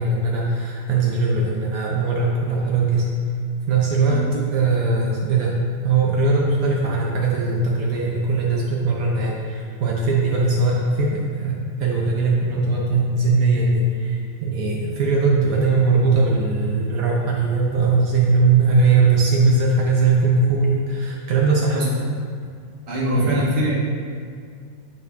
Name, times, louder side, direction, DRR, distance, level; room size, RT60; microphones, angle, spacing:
voice 1, 0.0-3.0 3.7-4.2 4.5-5.6 5.8-21.8 23.1-23.3, right 3 dB, 80° right, -3 dB, 0.7 m, -20 dB
voice 2, 22.9-23.8, equal, 35° right, -6 dB, 1.0 m, -22 dB
8.1 x 4.3 x 3.5 m, 2.2 s
omnidirectional pair, 2.3 m